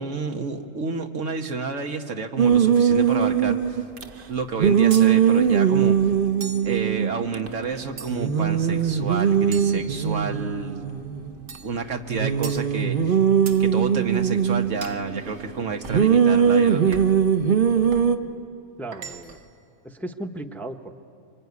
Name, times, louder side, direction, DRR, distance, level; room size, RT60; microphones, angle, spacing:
voice 1, 0.0-3.8 4.3-6.0 6.6-10.9 11.6-13.2 13.6-17.1, right 4 dB, 85° right, 5 dB, 1.7 m, -30 dB
sound 1, 2.4-4.0 4.6-7.5 7.7-7.8 8.1-11.6 12.1-14.9 15.9-18.2, right 8 dB, 50° right, 1.1 m, -20 dB
sound 2, 4.9-5.2 6.4-6.8 8.0-8.4 9.5-10.4 11.5-11.8 12.4-12.7 13.5-13.7 14.8-15.1 15.8-16.1 16.9-17.3 17.9-18.1 18.9-19.5, right 5 dB, 70° right, 1.4 m, -39 dB
voice 2, 18.8-19.4 19.8-20.9, right 1 dB, ahead, 6 dB, 0.8 m, -35 dB
26.0 x 24.0 x 9.6 m, 2.8 s
omnidirectional pair, 1.3 m